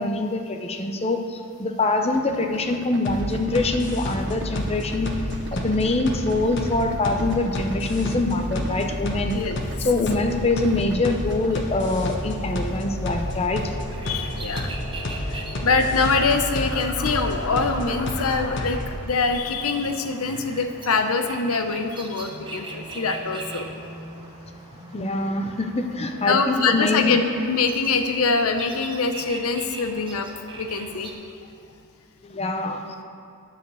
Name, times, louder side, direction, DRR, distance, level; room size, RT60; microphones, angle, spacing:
voice 1, 0.0-5.2 5.5-9.4 9.8-13.6 24.9-27.2 32.3-32.8, left 2 dB, 30° left, 5 dB, 0.6 m, -24 dB
Idling, 2.1-11.7, right 2 dB, 55° right, 0.7 m, -40 dB
sound 1, 3.1-19.0, left 1 dB, 55° left, 1.1 m, -30 dB
sound 2, 13.6-31.1, right 2 dB, 20° right, 0.9 m, -41 dB
voice 2, 14.1-14.7 15.3-23.7 26.3-30.3 30.6-31.1, left 4 dB, 75° left, 6 dB, 0.7 m, -24 dB
10.5 x 5.1 x 6.8 m, 2.5 s
head